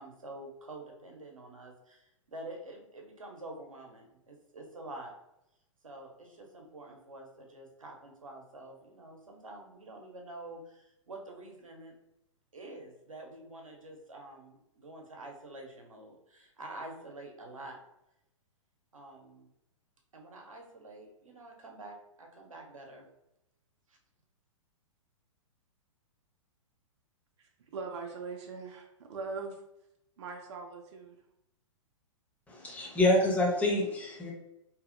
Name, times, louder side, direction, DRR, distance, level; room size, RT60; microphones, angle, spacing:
voice 1, 0.0-5.1 5.8-11.9 12.5-17.8 18.9-19.5 20.1-23.1 23.9-24.0, right 2 dB, 85° right, 1 dB, 0.7 m, -47 dB
voice 2, 27.4-29.6 30.2-31.2, right 4 dB, 55° right, 2 dB, 0.5 m, -41 dB
voice 3, 32.5-34.3, left 1 dB, 10° left, -1 dB, 0.6 m, -27 dB
2.7 x 2.7 x 2.5 m, 0.84 s
figure-of-eight pair, 110°, 17 cm